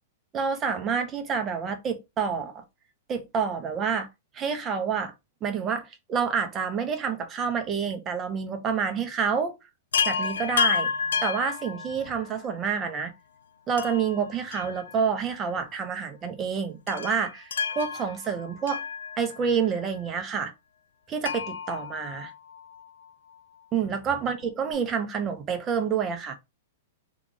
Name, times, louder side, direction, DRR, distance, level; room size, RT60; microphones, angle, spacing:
voice 1, 0.3-2.6 3.1-4.1 4.3-5.1 5.4-9.6 10.1-10.9 11.2-13.1 13.7-18.8 19.2-20.5 21.1-22.3 23.7-26.3, right 6 dB, 25° right, 0.7 m, -28 dB
Chime, 9.9-12.4 13.8-15.3 15.6-15.7 16.9-19.6 21.2-22.8 24.4-24.5 24.7-24.8, left 6 dB, 90° left, 0.4 m, -31 dB
2.9 x 2.4 x 3.7 m
hypercardioid pair, 145°, 0 cm